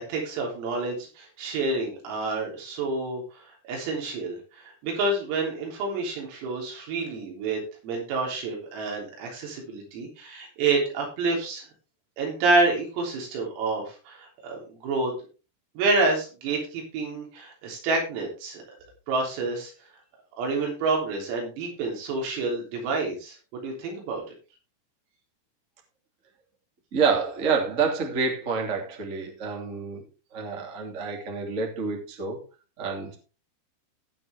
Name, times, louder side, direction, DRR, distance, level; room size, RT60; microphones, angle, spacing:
voice 1, 0.0-3.2 3.7-11.6 12.2-15.1 15.8-18.6 19.1-19.7 20.4-24.2, right 3 dB, 80° right, 0 dB, 6.1 m, -28 dB
voice 2, 26.9-30.0 30.3-32.4 32.8-33.1, right 5 dB, 25° right, 1 dB, 1.7 m, -28 dB
18.0 x 6.2 x 3.5 m, 0.33 s
omnidirectional pair, 6.0 m